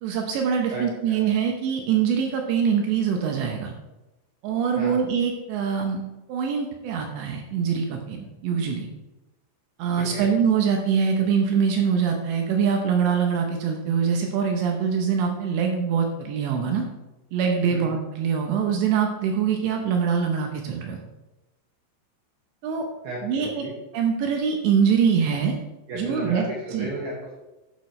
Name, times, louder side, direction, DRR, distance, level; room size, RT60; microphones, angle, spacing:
voice 1, 0.0-3.7 4.4-6.0 6.3-8.9 9.8-16.8 17.3-21.0 22.6-22.9 23.2-23.6 23.9-25.6 26.0-26.4 26.7-26.9, right 7 dB, 75° right, 3 dB, 3.0 m, -24 dB
voice 2, 0.7-1.3 4.7-5.0 10.0-10.3 17.7-17.9 23.0-23.7 25.9-27.3, right 1 dB, 60° right, -5 dB, 3.3 m, -34 dB
11.5 x 9.9 x 3.2 m, 1.0 s
omnidirectional pair, 5.4 m